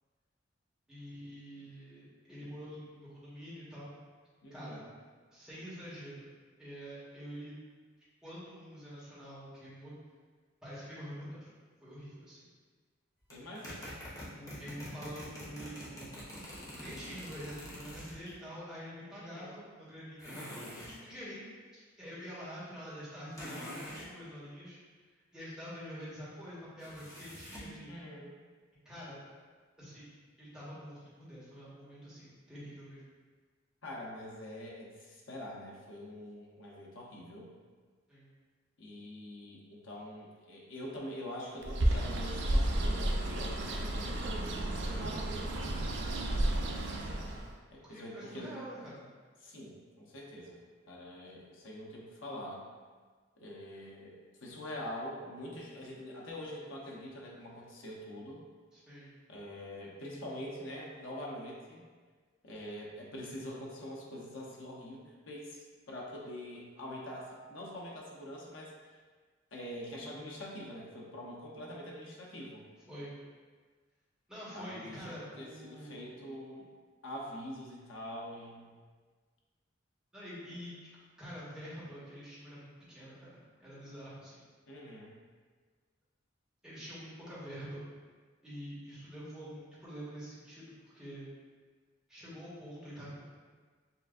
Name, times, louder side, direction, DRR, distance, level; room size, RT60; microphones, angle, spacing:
voice 1, 0.9-3.9 4.5-4.8 5.3-6.3 6.6-7.6 8.2-9.9 10.6-11.5 11.8-12.4 14.1-20.4 20.8-21.4 21.7-24.8 25.3-27.9 28.8-29.2 29.8-30.1 30.4-33.0 38.1-38.3 44.5-45.2 45.5-45.9 47.8-49.0 58.7-59.1 72.9-73.1 74.3-76.1 80.1-80.9 81.2-83.3 83.6-84.4 86.6-87.8 88.4-91.3 92.1-93.2, equal, 5° right, -10 dB, 1.4 m, -46 dB
voice 2, 4.4-4.9 13.3-14.0 19.2-19.6 27.8-28.3 33.8-37.5 38.8-44.3 46.3-46.6 47.7-48.6 49.4-50.6 50.9-52.7 53.4-58.4 59.3-61.8 62.4-68.7 69.5-72.6 74.5-76.7 77.0-78.8 84.7-85.2, left 1 dB, 85° left, -2 dB, 0.9 m, -45 dB
sound 1, 13.3-18.3 20.2-21.0 23.3-24.1 26.8-27.8, equal, 20° left, 0.9 m, -45 dB
Bird, 41.6-47.5, right 1 dB, 65° right, 0.5 m, -32 dB
6.8 x 2.5 x 2.5 m, 1.5 s
head